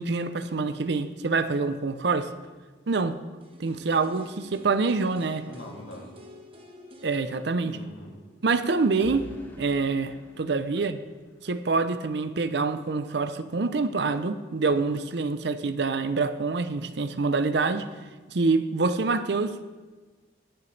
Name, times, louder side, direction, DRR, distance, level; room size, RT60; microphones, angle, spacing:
voice 1, 0.0-2.3 2.9-3.2 3.6-5.5 7.0-7.8 8.4-9.3 9.6-11.0 11.4-17.9 18.3-19.6, right 4 dB, 60° right, 0.6 m, -26 dB
sound 1, 3.4-9.3 9.6-9.7, left 1 dB, 30° right, 1.2 m, -50 dB
voice 2, 5.4-6.1 7.7-8.2 10.7-10.8, left 1 dB, 90° left, 1.9 m, -43 dB
sound 2, 9.0-11.9, equal, 10° left, 1.1 m, -48 dB
20.0 x 6.8 x 3.3 m
head